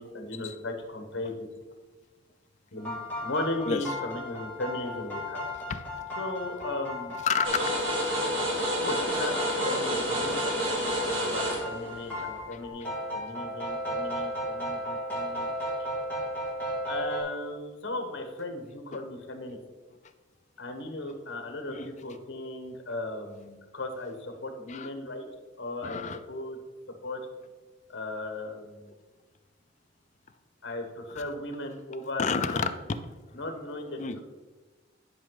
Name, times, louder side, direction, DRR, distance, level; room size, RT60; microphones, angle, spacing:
voice 1, 0.0-1.5 2.7-5.5 6.2-7.2 8.8-9.4 9.6-15.5 15.8-15.9 16.8-19.6 20.6-25.2 25.6-26.0 26.3-26.6 27.0-27.2 27.9-28.9 30.6-32.6 33.3-34.2, left 2 dB, 70° left, 5 dB, 1.1 m, -36 dB
sound 1, 2.8-17.2, left 1 dB, 10° left, 2.4 m, -35 dB
voice 2, 5.5-5.8 7.2-7.6 10.2-10.3 12.2-12.3 18.9-19.0 21.7-21.9 24.7-24.9 25.8-26.2 31.1-31.3 32.2-33.0 34.0-34.2, left 5 dB, 35° left, 8 dB, 0.4 m, -30 dB
sound 2, 7.4-12.7, right 1 dB, 85° right, 2.1 m, -30 dB
10.5 x 4.9 x 3.9 m, 1.3 s
head